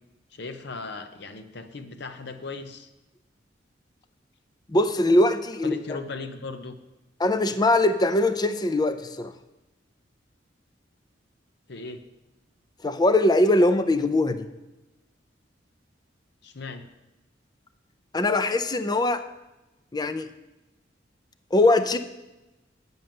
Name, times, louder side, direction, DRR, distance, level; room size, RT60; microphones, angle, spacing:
voice 1, 0.3-2.9 5.6-6.7 11.7-12.0 16.4-16.8, left 3 dB, 65° left, 8 dB, 0.9 m, -37 dB
voice 2, 4.7-6.0 7.2-9.3 12.8-14.5 18.1-19.2 19.9-20.3 21.5-22.0, left 2 dB, 20° left, 11 dB, 0.5 m, -21 dB
9.0 x 5.4 x 7.7 m, 1.0 s
head